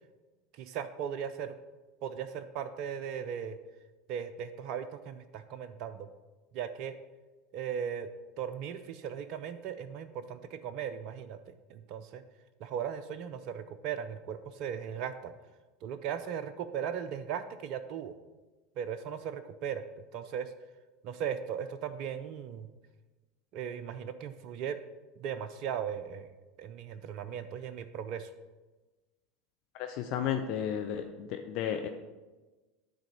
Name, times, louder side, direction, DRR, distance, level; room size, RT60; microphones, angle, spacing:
voice 1, 0.6-1.5 2.0-3.6 4.1-6.1 6.5-6.9 7.5-8.1 8.4-11.4 11.7-12.2 12.6-15.3 15.8-18.1 18.8-19.8 20.1-20.5 21.0-22.7 23.5-24.8 25.2-26.3 26.6-28.3, right 8 dB, 50° right, 11 dB, 0.4 m, -37 dB
voice 2, 29.8-31.9, left 9 dB, 55° left, 6 dB, 0.5 m, -33 dB
10.5 x 3.9 x 5.4 m, 1.2 s
figure-of-eight pair, 80°, 0 cm